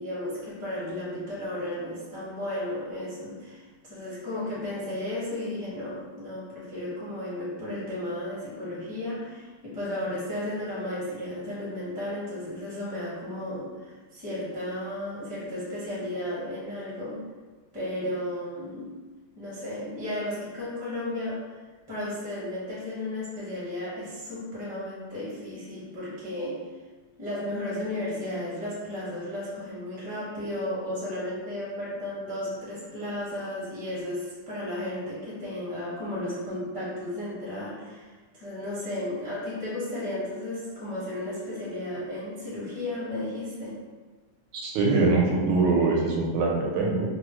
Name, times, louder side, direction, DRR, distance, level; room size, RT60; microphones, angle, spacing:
voice 1, 0.0-17.2 17.7-18.9 19.4-21.5 21.9-26.6 27.2-43.8, left 1 dB, 10° right, -9 dB, 0.4 m, -34 dB
voice 2, 44.5-47.1, right 3 dB, 80° right, -1 dB, 1.4 m, -23 dB
3.6 x 2.0 x 2.9 m, 1.3 s
omnidirectional pair, 2.4 m